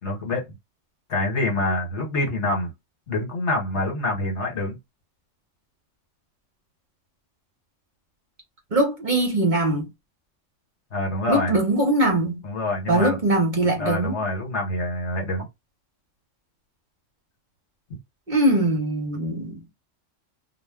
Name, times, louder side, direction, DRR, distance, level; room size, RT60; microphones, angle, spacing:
voice 1, 0.0-0.5 1.1-2.7 3.1-4.8 10.9-11.6 12.4-13.2 13.8-15.5, left 1 dB, 65° left, 1.3 m, -26 dB
voice 2, 8.7-9.9 11.3-12.4 12.9-14.2 18.3-19.6, right 1 dB, 45° right, 0.9 m, -21 dB
2.4 x 2.1 x 3.5 m
omnidirectional pair, 1.3 m